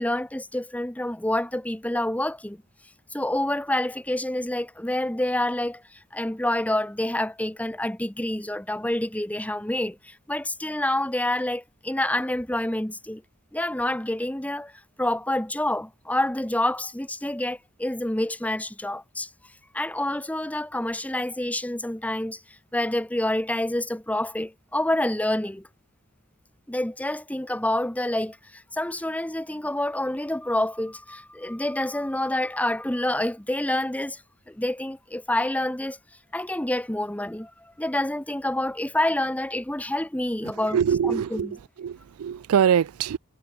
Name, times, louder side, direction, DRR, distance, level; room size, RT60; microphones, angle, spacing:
voice 1, 0.0-2.6 3.1-13.2 13.5-14.7 15.0-19.3 19.7-22.4 22.7-25.7 26.7-34.2 34.5-36.0 36.3-40.8 41.0-41.5, left 1 dB, 5° left, 1.1 m, -27 dB
voice 2, 40.7-43.2, right 8 dB, 85° right, 0.4 m, -23 dB
head